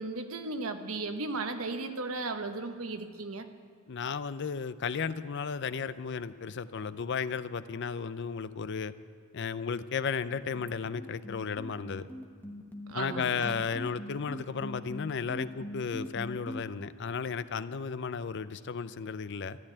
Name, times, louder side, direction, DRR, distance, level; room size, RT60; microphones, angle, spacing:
voice 1, 0.0-3.5 12.9-13.5, right 3 dB, 75° right, 7 dB, 1.1 m, -35 dB
voice 2, 3.9-8.9 9.3-12.1 12.9-19.6, left 5 dB, 55° left, 14 dB, 0.5 m, -34 dB
sound 1, 10.9-16.6, equal, 10° left, 1.2 m, -41 dB
13.5 x 12.0 x 8.6 m, 2.3 s
head